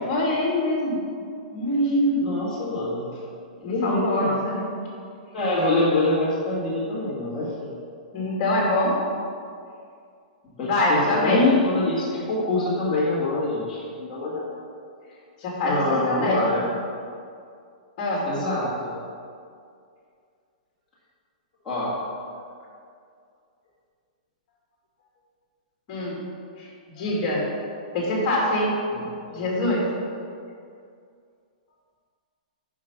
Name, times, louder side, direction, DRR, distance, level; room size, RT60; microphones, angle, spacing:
voice 1, 0.0-1.0 1.5-2.2 3.6-4.8 8.1-9.0 10.6-11.4 15.4-16.5 18.0-18.3 25.9-26.2 26.6-27.5 27.9-28.7 29.3-29.9, left 1 dB, 30° left, -3 dB, 2.5 m, -24 dB
voice 2, 2.2-3.1 3.6-4.3 5.3-7.5 10.6-14.5 15.6-16.6 18.2-18.9 21.6-21.9 28.9-29.5, left 2 dB, 10° left, -12 dB, 1.9 m, -25 dB
9.2 x 5.9 x 5.9 m, 2.3 s
hypercardioid pair, 175°, 4 cm